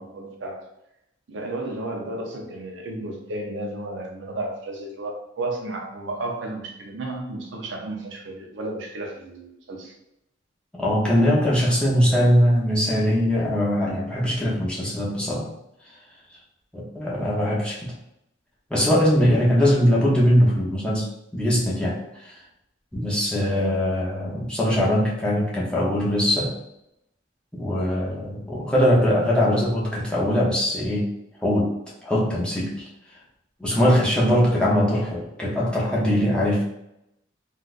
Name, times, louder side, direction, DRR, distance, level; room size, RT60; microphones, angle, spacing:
voice 1, 0.1-0.6 1.3-9.9, right 2 dB, 65° right, 1 dB, 0.6 m, -33 dB
voice 2, 10.8-15.5 16.7-17.9 18.7-21.1 21.3-22.3 22.9-26.5 27.5-31.1 31.4-31.7 32.0-32.9 33.6-36.6, equal, 5° left, -6 dB, 0.7 m, -21 dB
3.8 x 2.4 x 2.4 m, 0.82 s
head